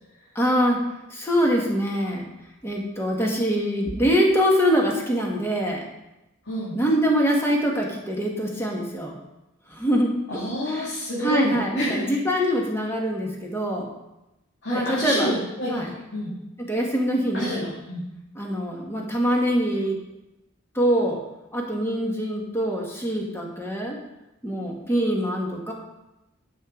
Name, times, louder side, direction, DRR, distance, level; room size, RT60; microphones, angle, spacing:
voice 1, 0.3-2.3 2.6-5.8 6.7-9.2 9.7-10.1 10.7-10.9 11.2-13.8 14.7-15.3 15.7-15.9 16.6-17.7 18.3-20.0 20.7-21.2 21.5-24.0 24.4-25.7, equal, 10° left, -1 dB, 1.6 m, -24 dB
voice 2, 10.3-12.0 14.6-15.8 16.1-16.3 17.3-18.0, equal, 55° left, -8 dB, 2.4 m, -28 dB
11.0 x 6.6 x 3.8 m, 0.94 s
head